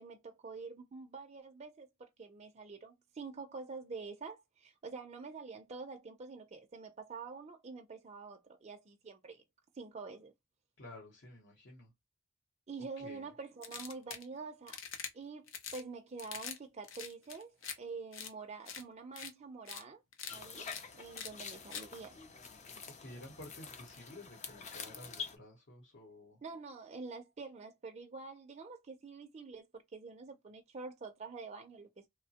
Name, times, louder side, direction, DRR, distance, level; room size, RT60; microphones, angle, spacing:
voice 1, 0.0-9.4 9.7-10.3 12.7-14.8 15.1-20.0 20.3-20.7 20.9-22.2 26.4-32.1, right 4 dB, 35° right, 0.4 m, -47 dB
voice 2, 10.8-11.9 12.8-13.3 23.0-26.4, left 1 dB, 60° left, 0.9 m, -52 dB
sound 1, 13.6-14.3 14.7-15.1 15.5-15.8 16.2-16.6 16.8-17.8 18.1-18.3 18.7-18.8 19.2-19.3 19.7-19.8 20.1-20.3 20.7-20.8 21.2-21.3 21.7-21.8, left 7 dB, 80° left, 0.6 m, -44 dB
sound 2, 20.3-25.4, left 6 dB, 35° left, 0.4 m, -47 dB
2.9 x 2.0 x 2.8 m
head